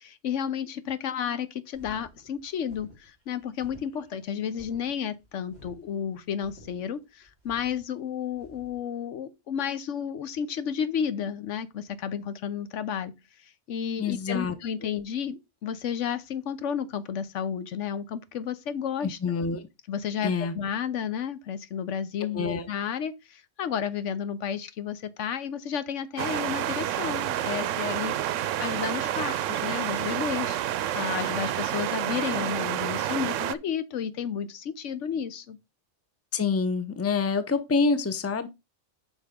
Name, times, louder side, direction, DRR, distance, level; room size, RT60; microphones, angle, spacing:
voice 1, 0.0-13.1 13.7-19.2 19.9-35.6, left 8 dB, 80° left, 1.1 m, -32 dB
sound 1, 1.7-8.8, equal, 65° left, 5.2 m, -53 dB
voice 2, 14.0-14.5 19.0-19.7 20.2-20.5 22.3-22.7 36.3-38.5, left 4 dB, 15° left, 0.6 m, -26 dB
sound 2, 26.2-33.6, right 12 dB, 90° right, 0.9 m, -29 dB
8.2 x 5.4 x 3.7 m
omnidirectional pair, 1.2 m